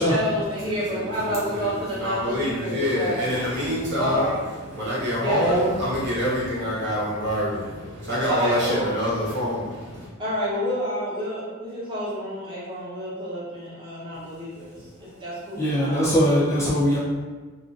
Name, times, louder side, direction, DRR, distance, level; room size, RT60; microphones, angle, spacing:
voice 1, 0.0-3.4 4.0-4.4 5.2-5.7 8.3-9.0 10.2-16.0, equal, 20° right, -9 dB, 0.8 m, -29 dB
voice 2, 0.9-4.3 4.7-10.1, equal, 55° right, -7 dB, 0.8 m, -26 dB
voice 3, 15.5-17.0, equal, 15° left, -8 dB, 0.4 m, -22 dB
2.4 x 2.2 x 2.5 m, 1.4 s
head